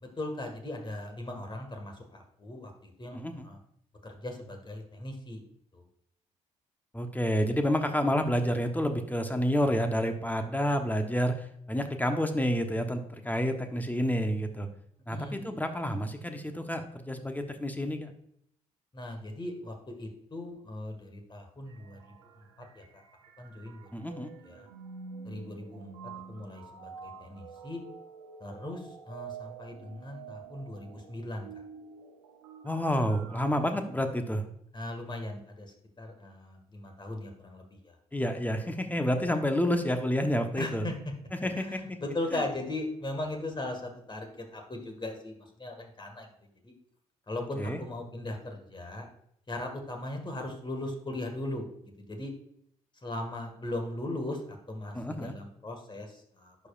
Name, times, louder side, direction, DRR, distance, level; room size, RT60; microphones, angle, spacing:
voice 1, 0.0-3.6 4.0-5.4 5.7-5.8 15.1-15.4 18.9-23.0 23.4-23.9 24.4-24.7 25.2-27.8 28.4-31.5 34.7-38.0 40.6-40.9 41.5-46.3 46.6-46.7 47.3-49.1 49.5-52.3 52.9-56.6, left 1 dB, 30° left, 3 dB, 1.9 m, -38 dB
voice 2, 3.1-3.5 6.9-14.7 15.1-18.1 23.9-24.3 32.6-34.4 38.1-40.8 41.4-41.8 47.6-47.8 54.9-55.3, equal, 10° left, 6 dB, 1.1 m, -29 dB
sound 1, 21.7-33.4, right 6 dB, 90° right, 0.6 m, -48 dB
11.0 x 5.0 x 2.5 m, 0.71 s
hypercardioid pair, 45°, 16 cm